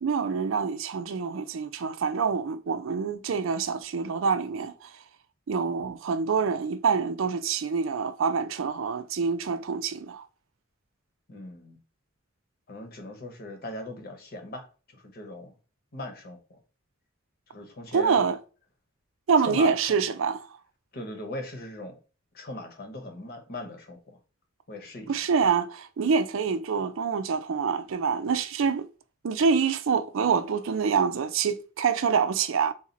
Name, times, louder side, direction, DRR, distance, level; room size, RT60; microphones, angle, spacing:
voice 1, 0.0-4.9 5.5-10.2 17.9-18.4 19.3-20.4 25.1-28.9 29.2-32.7, right 5 dB, 65° right, 0.4 m, -26 dB
voice 2, 11.3-11.8 12.7-14.7 14.9-15.5 15.9-16.6 17.5-18.2 19.5-20.0 20.9-22.0 22.3-24.2 24.7-25.2, left 1 dB, 50° left, 1.1 m, -39 dB
3.9 x 2.5 x 4.0 m
head